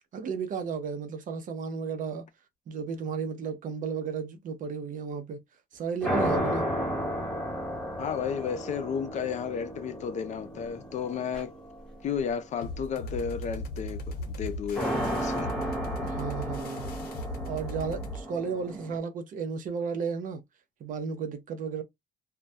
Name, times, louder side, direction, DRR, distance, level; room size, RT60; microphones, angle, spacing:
voice 1, 0.1-2.3 2.7-5.4 5.7-6.7 16.0-16.9 17.5-20.4 20.8-21.8, right 5 dB, 50° right, 0.6 m, -33 dB
sound 1, 6.0-12.3 14.7-19.0, equal, 5° left, 0.9 m, -33 dB
voice 2, 8.0-11.5 12.0-14.0 14.3-15.5, left 7 dB, 45° left, 0.5 m, -33 dB
sound 2, 12.6-18.2, left 1 dB, 65° left, 0.8 m, -37 dB
2.2 x 2.1 x 2.7 m
cardioid pair, 110°, 17 cm